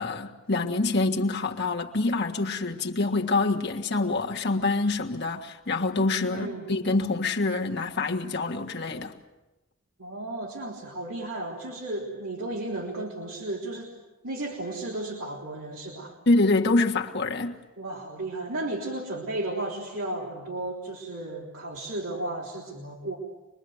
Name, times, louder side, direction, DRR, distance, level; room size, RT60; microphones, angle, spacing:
voice 1, 0.0-9.1 16.2-17.6, left 3 dB, 50° left, 1.6 m, -26 dB
voice 2, 6.3-6.7 10.0-14.0 14.2-16.2 17.8-23.2, right 2 dB, 90° right, 3.6 m, -34 dB
25.5 x 22.0 x 8.0 m
head